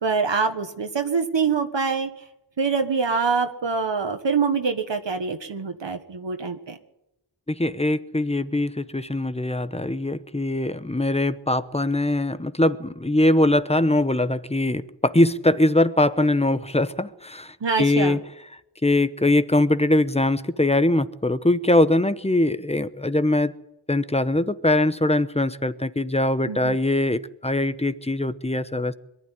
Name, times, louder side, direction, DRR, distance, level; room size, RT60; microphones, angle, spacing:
voice 1, 0.0-2.1 2.6-6.8 17.6-18.2 26.5-26.8, right 5 dB, 65° right, 6 dB, 1.5 m, -25 dB
voice 2, 7.5-18.2 18.8-23.5 23.9-28.9, left 1 dB, 15° left, 13 dB, 0.9 m, -22 dB
22.5 x 12.5 x 9.8 m, 0.88 s
wide cardioid pair, 65°, 46 cm